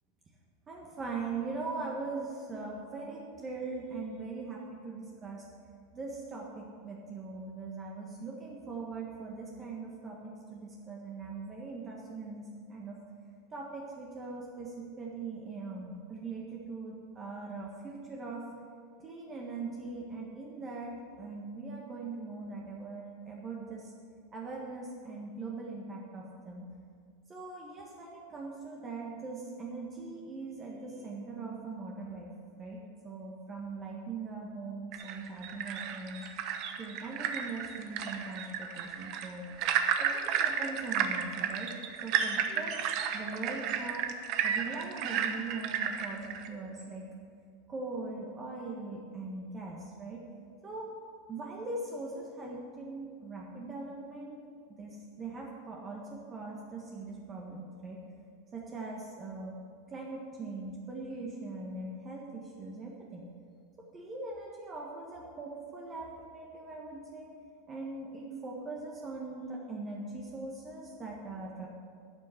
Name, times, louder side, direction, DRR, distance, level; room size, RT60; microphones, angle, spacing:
voice 1, 0.7-5.4 5.9-13.0 13.5-18.4 19.0-23.9 24.3-26.7 27.3-32.3 32.6-36.2 36.8-39.4 40.0-41.8 42.0-44.1 44.4-47.0 47.7-50.2 50.6-50.9 51.3-54.4 54.7-58.0 58.5-59.5 59.9-63.2 63.9-67.3 67.7-71.7, right 3 dB, 25° right, -2 dB, 1.5 m, -41 dB
sound 1, 34.9-46.5, right 8 dB, 50° right, 1.0 m, -33 dB
11.5 x 6.5 x 7.9 m, 2.1 s
supercardioid pair, 140°, 0 cm